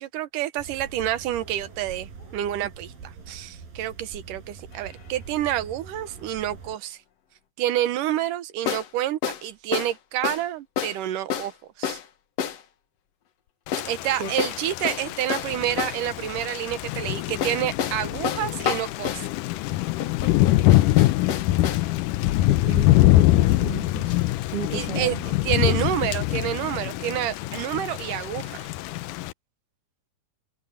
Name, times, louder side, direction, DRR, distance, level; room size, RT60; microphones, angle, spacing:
voice 1, 0.0-7.0 7.6-11.5 11.8-12.0 13.9-19.3 24.7-28.6, right 12 dB, 75° right, 2.5 m, -28 dB
sound 1, 0.6-6.8, right 5 dB, 90° right, 6.6 m, -43 dB
sound 2, 4.7-4.8 8.7-8.9 9.2-9.4 9.7-9.9 10.2-10.5 10.8-11.0 11.3-11.5 11.8-12.1 12.4-12.6 13.7-13.9 14.4-16.0 17.4-19.3 20.0-21.9, left 8 dB, 55° left, 2.1 m, -29 dB
Thunder / Rain, 13.7-29.3, left 16 dB, 80° left, 2.1 m, -24 dB
voice 2, 22.5-24.2 24.5-25.3 25.7-25.8, right 6 dB, 45° right, 3.1 m, -34 dB
omnidirectional pair, 4.0 m